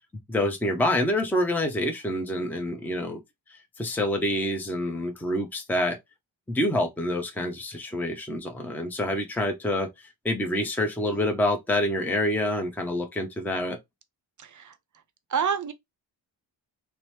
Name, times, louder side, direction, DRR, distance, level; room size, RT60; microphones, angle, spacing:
voice 1, 0.3-3.2 3.5-6.0 6.5-13.8, left 1 dB, 5° left, 0.6 m, -27 dB
voice 2, 14.4-14.8 15.3-15.7, right 6 dB, 40° right, 0.6 m, -29 dB
2.9 x 2.1 x 3.2 m
cardioid pair, 70°, 46 cm